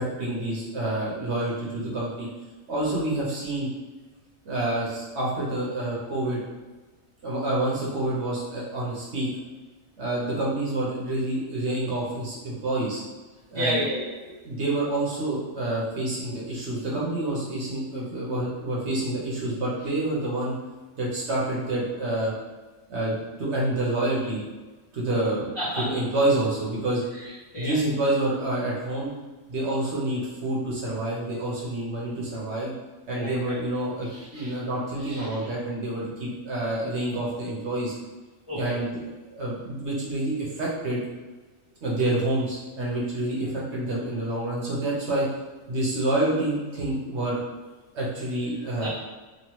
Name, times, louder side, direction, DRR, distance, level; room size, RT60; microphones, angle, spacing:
voice 1, 0.0-2.3 2.7-3.7 4.5-6.4 7.2-9.3 10.0-13.0 13.5-13.8 14.4-20.5 21.0-22.3 22.9-24.4 24.9-25.5 25.8-27.0 27.6-29.1 29.5-32.7 33.1-37.9 38.5-39.0 39.3-41.0 41.8-45.3 45.7-47.4 47.9-48.9, right 1 dB, 60° right, -5 dB, 1.1 m, -28 dB
voice 2, 13.5-14.2 25.6-25.9 27.2-27.8 33.2-33.6 34.0-34.6 35.0-35.3 38.5-38.8 48.8-48.9, equal, 45° left, -9 dB, 0.4 m, -31 dB
3.0 x 2.3 x 3.0 m, 1.2 s
omnidirectional pair, 1.4 m